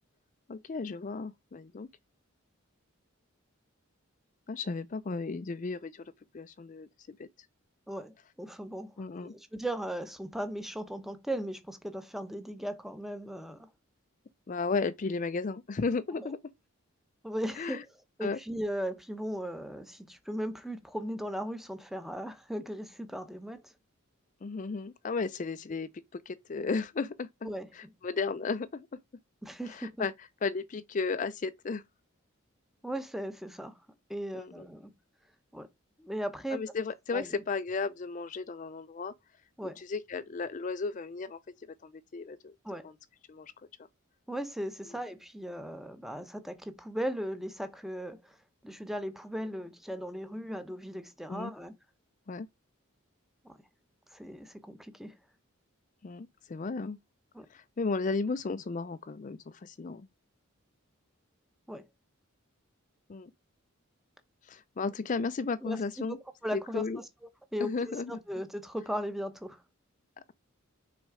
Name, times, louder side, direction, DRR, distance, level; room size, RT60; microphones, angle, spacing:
voice 1, 0.5-1.9 4.5-7.3 9.0-9.3 14.5-16.4 17.6-17.8 18.2-18.4 24.4-28.9 29.6-31.8 34.3-34.7 36.5-39.1 39.6-42.5 42.8-42.9 43.3-43.5 51.3-51.5 52.3-52.5 56.0-57.0 57.5-60.1 63.1-63.3 64.4-66.2 66.5-67.0 67.6-68.2, left 4 dB, 35° left, 0.4 m, -34 dB
voice 2, 7.9-8.9 9.2-13.7 16.2-16.3 17.2-17.9 18.2-23.7 27.4-27.7 29.4-30.1 32.8-33.8 34.1-34.9 35.5-35.7 36.0-36.6 37.1-37.3 39.6-39.8 42.6-42.9 44.3-48.4 48.6-51.7 53.4-53.5 54.1-55.1 57.3-57.5 61.7-61.8 65.6-67.0 67.5-69.6, equal, ahead, 0.8 m, -37 dB
6.2 x 4.2 x 4.8 m
head